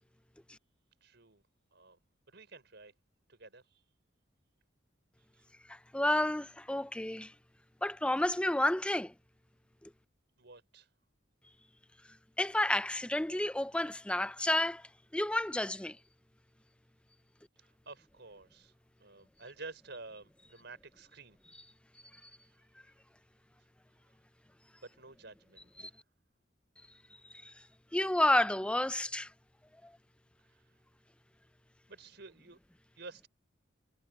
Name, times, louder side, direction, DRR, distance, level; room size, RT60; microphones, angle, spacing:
voice 1, 1.0-1.4 1.7-2.0 2.3-2.9 3.3-3.8 5.2-5.4 10.4-10.9 17.6-18.7 19.0-21.4 24.8-26.0 30.5-30.6 31.9-32.6 33.0-33.3, right 3 dB, 60° right, 5.4 m, -51 dB
voice 2, 5.7-7.3 7.8-9.1 12.4-16.0 22.2-22.3 25.8-25.9 27.4-27.5 27.9-29.3 29.8-29.9, left 1 dB, 5° left, 0.5 m, -31 dB
head